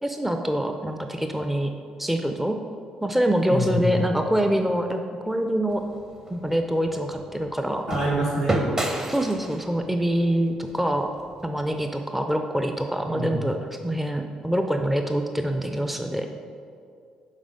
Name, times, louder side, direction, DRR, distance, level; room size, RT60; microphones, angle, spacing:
voice 1, 0.0-1.7 2.0-2.6 3.0-5.0 5.3-5.8 6.3-7.8 9.1-11.1 11.4-13.6 13.8-16.3, right 1 dB, 5° right, 5 dB, 0.5 m, -25 dB
voice 2, 3.5-3.8 7.9-8.6 13.1-13.4, right 1 dB, 70° right, -7 dB, 2.0 m, -26 dB
sound 1, 5.7-11.8, right 1 dB, 25° right, 0.9 m, -32 dB
7.3 x 5.0 x 5.0 m, 2.4 s
figure-of-eight pair, 45°, 3 cm